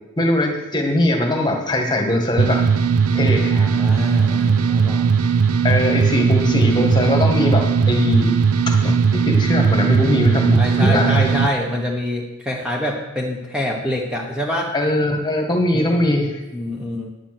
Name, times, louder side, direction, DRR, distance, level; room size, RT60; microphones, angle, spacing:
voice 1, 0.2-2.7 3.1-3.7 5.6-8.3 8.7-11.3 14.7-16.4, left 1 dB, 20° left, 1 dB, 1.6 m, -20 dB
sound 1, 2.4-11.5, right 5 dB, 75° right, 0.5 m, -18 dB
voice 2, 3.5-5.1 7.4-7.8 10.5-14.7 15.7-16.0 16.5-17.1, left 1 dB, 5° right, -1 dB, 1.1 m, -26 dB
9.7 x 8.5 x 6.0 m, 1.0 s
head